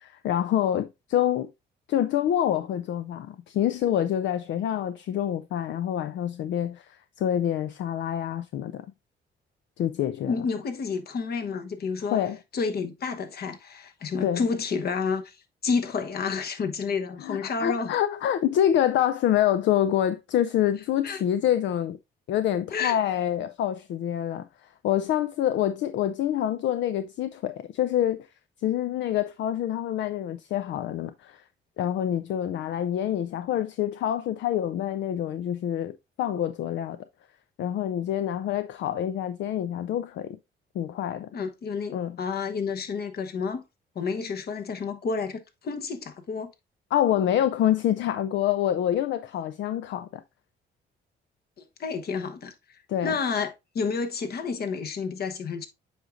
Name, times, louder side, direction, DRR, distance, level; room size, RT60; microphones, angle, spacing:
voice 1, 0.0-1.5 1.9-8.9 9.8-10.4 12.1-12.4 14.2-14.4 17.2-22.0 22.3-24.5 24.8-28.3 28.6-31.4 31.8-37.0 37.6-40.4 40.7-41.3 41.9-42.2 46.9-50.2 52.9-53.1, left 11 dB, 70° left, 0.4 m, -26 dB
voice 2, 10.3-12.2 12.5-15.4 15.6-17.9 21.0-21.2 22.7-23.0 41.3-43.6 43.9-46.5 51.6-52.5 53.0-55.7, left 5 dB, 55° left, 1.0 m, -30 dB
7.9 x 5.0 x 2.5 m
cardioid pair, 90°, 20 cm